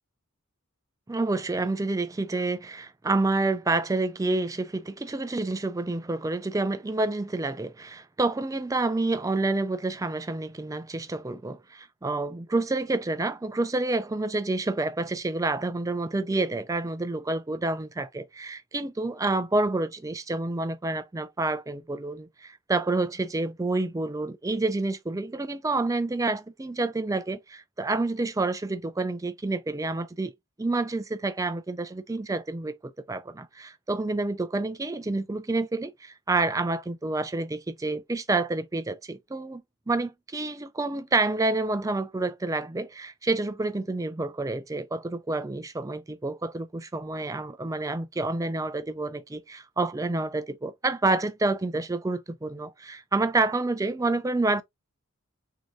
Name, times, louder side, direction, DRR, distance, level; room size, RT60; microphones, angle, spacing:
voice 1, 1.1-30.3 30.6-54.6, right 2 dB, 15° right, 0.4 m, -28 dB
6.3 x 2.8 x 2.3 m
head